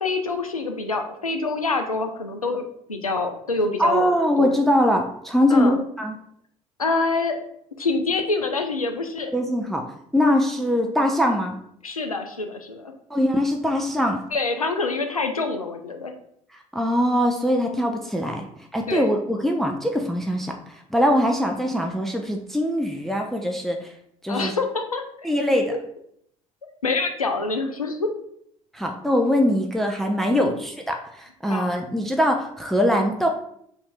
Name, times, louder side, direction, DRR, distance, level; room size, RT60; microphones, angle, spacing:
voice 1, 0.0-4.1 4.4-4.6 5.5-5.7 6.8-7.4 7.8-9.3 11.8-12.9 14.3-16.1 18.9-19.2 24.3-25.0 26.8-28.1 30.3-30.5 31.5-31.7, left 3 dB, 90° left, 5 dB, 0.4 m, -26 dB
voice 2, 3.8-6.2 9.3-9.8 10.1-11.6 13.1-14.2 16.7-18.5 18.7-23.9 24.2-24.5 25.2-25.7 28.7-33.3, equal, ahead, 2 dB, 0.5 m, -22 dB
5.5 x 2.7 x 3.4 m, 0.70 s
figure-of-eight pair, 55°, 18 cm